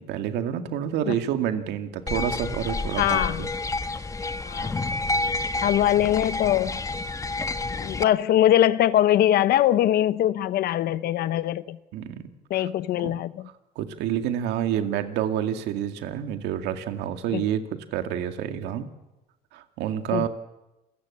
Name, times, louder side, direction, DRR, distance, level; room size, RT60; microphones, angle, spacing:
voice 1, 0.0-3.5 11.9-12.7 13.0-13.1 13.8-18.9 19.5-20.3, right 10 dB, 85° right, 2.1 m, -28 dB
sound 1, 2.1-8.0, left 3 dB, 20° left, 1.0 m, -29 dB
voice 2, 3.0-3.4 4.4-4.8 5.6-6.7 7.8-11.8 12.5-13.3 17.3-17.4 20.1-20.3, left 12 dB, 70° left, 0.7 m, -22 dB
28.0 x 15.0 x 8.5 m
cardioid pair, 110°, 17 cm